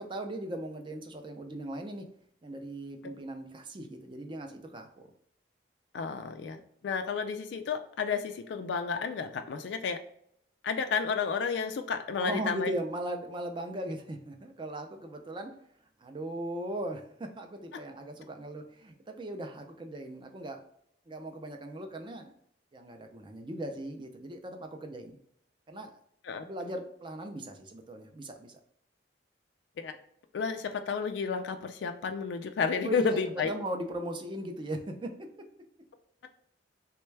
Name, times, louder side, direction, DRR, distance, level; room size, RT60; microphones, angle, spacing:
voice 1, 0.0-2.0 2.4-5.1 12.2-15.5 16.0-20.6 21.1-22.3 22.7-25.2 25.7-25.9 26.4-28.6 32.8-35.1, right 1 dB, 25° right, 5 dB, 0.4 m, -38 dB
voice 2, 5.9-10.0 10.6-12.8 26.2-26.4 29.8-30.0 30.3-33.5, left 5 dB, 70° left, 7 dB, 0.3 m, -31 dB
3.3 x 2.2 x 3.1 m, 0.70 s
head